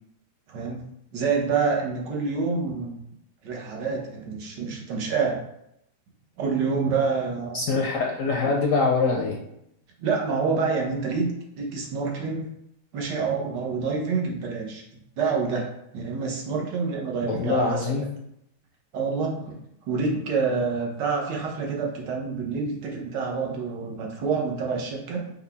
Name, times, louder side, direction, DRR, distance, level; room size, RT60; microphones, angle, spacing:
voice 1, 0.5-0.8 1.1-3.0 3.4-5.4 6.4-7.6 10.0-12.5 12.9-14.8 15.2-18.1 18.9-19.6 19.9-25.3, right 4 dB, 80° right, 0 dB, 1.5 m, -27 dB
voice 2, 7.5-9.4 17.3-18.1, left 4 dB, 70° left, 0 dB, 0.8 m, -24 dB
5.5 x 2.2 x 3.4 m, 0.77 s
omnidirectional pair, 1.8 m